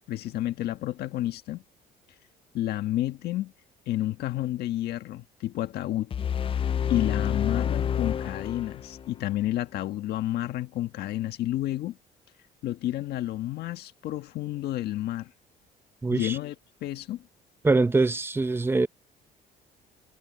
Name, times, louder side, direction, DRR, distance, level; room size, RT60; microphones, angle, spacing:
voice 1, 0.1-1.6 2.5-3.5 3.9-6.1 6.9-12.0 12.6-15.3 16.1-16.5 16.8-17.2, left 14 dB, 70° left, 1.5 m, -30 dB
sound 1, 6.1-9.2, left 8 dB, 30° left, 0.5 m, -28 dB
voice 2, 16.0-16.4 17.6-18.9, right 3 dB, 15° right, 1.0 m, -23 dB
cardioid pair, 110°, 17 cm